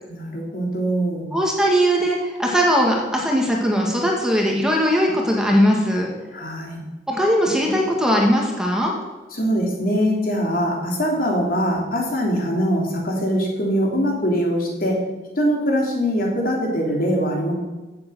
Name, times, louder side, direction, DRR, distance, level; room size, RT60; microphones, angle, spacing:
voice 1, 0.1-1.3 6.3-6.8 9.3-15.0 15.3-17.5, equal, 50° left, 0 dB, 3.4 m, -22 dB
voice 2, 1.3-6.1 7.1-8.9, equal, 5° right, -1 dB, 2.2 m, -19 dB
15.5 x 7.9 x 6.5 m, 1.2 s
head